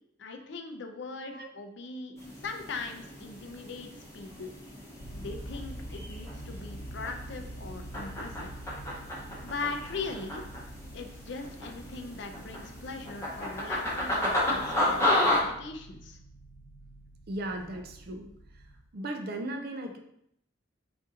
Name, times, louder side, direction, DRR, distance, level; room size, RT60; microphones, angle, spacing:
voice 1, 0.2-2.1 2.4-4.5 5.2-8.6 9.4-10.5 10.9-16.2, left 4 dB, 60° left, 5 dB, 0.5 m, -40 dB
sound 1, 2.2-15.4, left 1 dB, 15° left, 0.8 m, -33 dB
sound 2, 5.0-18.8, right 1 dB, 75° left, 1.1 m, -46 dB
voice 2, 17.3-18.3 18.9-20.0, right 1 dB, 50° right, 4 dB, 0.4 m, -37 dB
3.9 x 2.6 x 3.7 m, 0.74 s
head